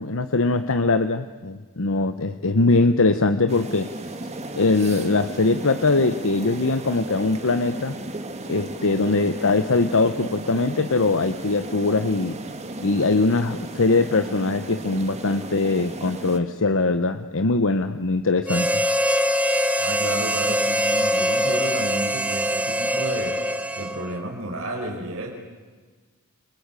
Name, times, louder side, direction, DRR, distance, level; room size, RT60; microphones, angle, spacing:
voice 1, 0.0-3.9 4.5-7.9 8.5-12.4 12.8-18.8, left 3 dB, 65° left, 10 dB, 1.1 m, -22 dB
sound 1, 3.5-16.4, right 2 dB, 30° right, 2.2 m, -35 dB
Harmonica, 18.5-24.2, equal, 5° right, 1.2 m, -23 dB
voice 2, 19.8-23.4 23.8-25.3, right 1 dB, 65° right, 0 dB, 5.0 m, -31 dB
29.5 x 24.0 x 8.4 m, 1.4 s
head